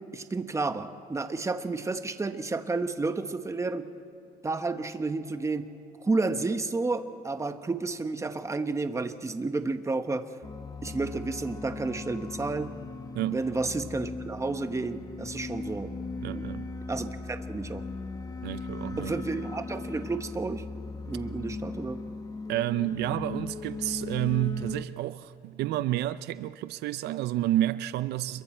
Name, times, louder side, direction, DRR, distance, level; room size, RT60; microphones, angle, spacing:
voice 1, 0.1-3.9 4.4-5.7 6.0-10.3 10.8-12.7 13.2-15.9 16.3-16.4 16.9-17.9 19.0-20.6 21.1-22.0, right 3 dB, 15° right, 1.2 m, -31 dB
sound 1, 10.4-24.8, left 3 dB, 20° left, 0.9 m, -38 dB
voice 2, 16.2-16.7 18.4-19.1 22.5-28.4, right 14 dB, 80° right, 0.5 m, -30 dB
28.0 x 22.5 x 4.4 m
cardioid pair, 110°, 17 cm